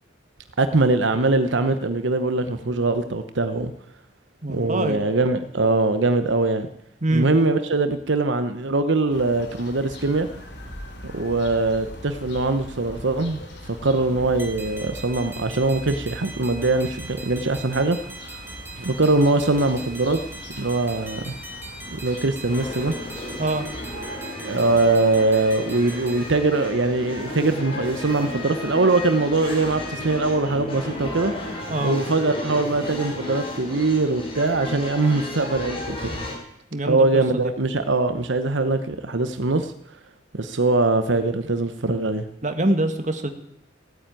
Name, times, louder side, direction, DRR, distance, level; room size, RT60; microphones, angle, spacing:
voice 1, 0.6-3.7 4.5-6.7 7.1-10.3 11.0-13.4 13.7-18.0 18.8-20.2 20.6-21.4 21.9-22.9 24.4-31.3 31.8-36.0 36.9-39.7 40.3-42.3, right 2 dB, 80° right, 9 dB, 1.0 m, -22 dB
voice 2, 4.4-5.0 7.0-7.3 23.4-23.7 31.7-32.0 36.7-37.5 42.4-43.3, right 1 dB, 40° right, 7 dB, 1.7 m, -24 dB
sound 1, 9.1-24.0, left 1 dB, 65° left, 3.8 m, -40 dB
sound 2, 14.4-26.2, right 3 dB, 10° right, 2.4 m, -41 dB
sound 3, 22.4-36.4, left 1 dB, 30° left, 4.8 m, -33 dB
16.5 x 9.4 x 9.1 m, 0.78 s
head